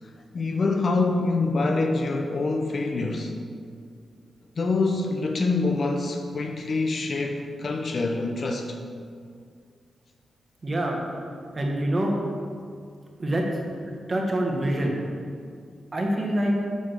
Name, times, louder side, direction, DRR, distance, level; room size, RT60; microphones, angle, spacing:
voice 1, 0.0-3.3 4.6-8.8, left 3 dB, 45° left, 3 dB, 0.6 m, -26 dB
voice 2, 10.6-11.0 11.5-12.1 13.2-13.6 13.9-15.0 15.9-16.5, right 1 dB, 30° right, 0 dB, 1.2 m, -25 dB
9.2 x 3.6 x 6.6 m, 2.2 s
wide cardioid pair, 150°, 0 cm